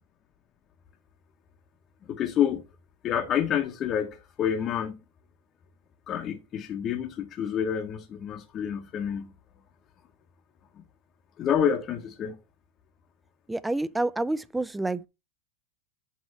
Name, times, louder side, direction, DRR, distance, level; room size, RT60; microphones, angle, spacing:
voice 1, 2.1-2.6 3.0-5.0 6.1-9.3 10.8-10.9 11.4-12.4, left 8 dB, 30° left, 0.8 m, -28 dB
voice 2, 13.5-15.1, right 2 dB, 5° right, 0.3 m, -28 dB
8.0 x 3.1 x 5.2 m
supercardioid pair, 150°, 0 cm